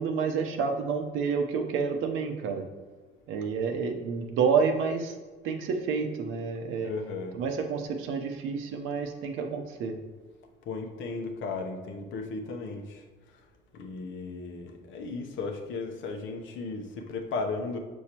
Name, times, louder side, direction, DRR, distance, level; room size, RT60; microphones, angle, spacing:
voice 1, 0.0-2.6 3.3-5.1 5.4-6.9 7.3-9.9, right 5 dB, 85° right, 4 dB, 0.8 m, -29 dB
voice 2, 6.8-7.4 10.7-13.0 13.7-17.8, left 3 dB, 75° left, 4 dB, 0.9 m, -35 dB
6.4 x 6.3 x 2.9 m, 1.3 s
cardioid pair, 145°, 20 cm